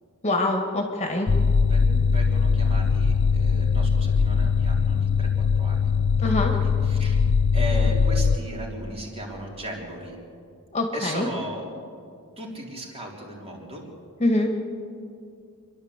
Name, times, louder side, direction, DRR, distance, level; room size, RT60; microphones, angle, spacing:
voice 1, 0.2-1.3 6.2-6.5 10.7-11.3 14.2-14.5, left 2 dB, 30° left, 2 dB, 2.0 m, -24 dB
sound 1, 1.3-8.4, left 5 dB, 55° left, 0.5 m, -21 dB
voice 2, 1.7-5.9 6.2-7.2 7.5-10.2 10.9-11.7 12.4-13.9, equal, 25° right, -1 dB, 3.7 m, -36 dB
27.5 x 11.5 x 8.3 m, 2.4 s
head